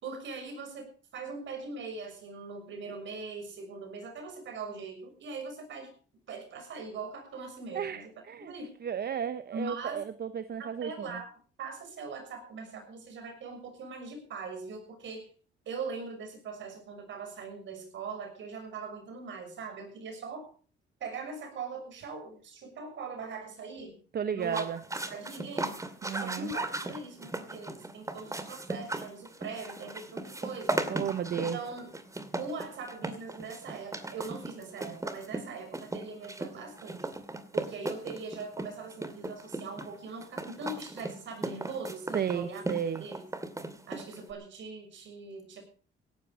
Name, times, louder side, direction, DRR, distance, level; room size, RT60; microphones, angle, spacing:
voice 1, 0.0-5.9 6.3-8.1 8.5-8.7 9.5-10.0 10.6-11.2 11.6-15.3 15.6-20.5 21.0-24.0 24.3-24.6 25.1-25.8 26.1-30.8 31.3-31.9 32.3-37.1 37.5-42.6 43.0-43.2 43.9-45.6, right 4 dB, 70° right, 5 dB, 6.5 m, -41 dB
voice 2, 7.7-8.5 8.8-11.2 24.1-24.8 26.0-26.5 30.9-31.6 42.1-43.0, right 8 dB, 55° right, 11 dB, 1.0 m, -33 dB
sound 1, 24.4-44.3, right 2 dB, 15° right, 2.3 m, -37 dB
17.0 x 12.0 x 4.9 m, 0.42 s
cardioid pair, 90°, 20 cm